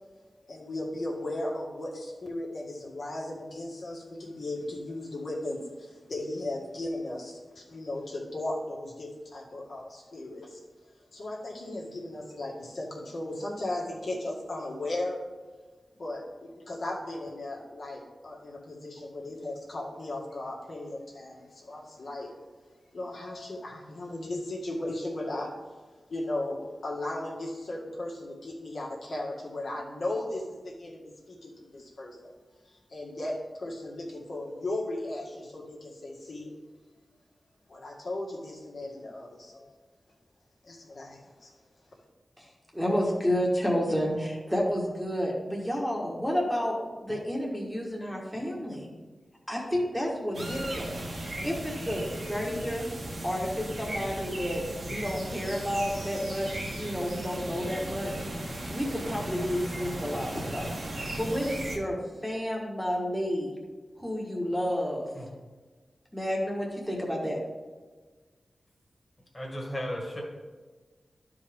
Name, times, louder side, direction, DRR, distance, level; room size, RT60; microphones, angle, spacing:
voice 1, 0.5-10.6 11.1-15.2 16.0-22.3 22.9-25.5 26.1-32.3 32.6-36.5 37.7-39.8 40.6-41.5, left 1 dB, 65° left, -4 dB, 1.7 m, -36 dB
voice 2, 42.4-46.8 47.0-48.9 49.5-52.9 53.2-58.1 58.7-60.7 61.2-63.5 64.0-65.1 66.1-67.4, equal, ahead, -2 dB, 1.3 m, -30 dB
sound 1, 50.3-61.8, right 1 dB, 60° right, 1.4 m, -36 dB
voice 3, 69.3-70.2, equal, 20° left, -1 dB, 1.7 m, -34 dB
12.0 x 4.8 x 3.5 m, 1.4 s
wide cardioid pair, 125°, 0 cm